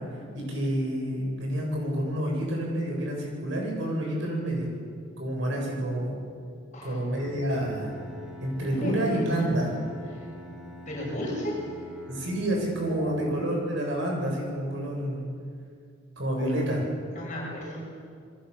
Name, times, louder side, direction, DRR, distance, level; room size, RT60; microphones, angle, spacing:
voice 1, 0.3-4.7 5.2-6.2 6.8-7.9 8.4-9.7 12.1-15.2 16.2-16.8, right 1 dB, 65° right, -1 dB, 7.9 m, -28 dB
Bowed string instrument, 7.1-13.0, equal, ahead, 4.2 m, -46 dB
voice 2, 8.7-9.6 10.9-11.6 12.9-13.4 16.4-16.6 17.1-17.8, equal, 40° left, -4 dB, 7.1 m, -35 dB
29.0 x 22.0 x 7.2 m, 2.3 s
head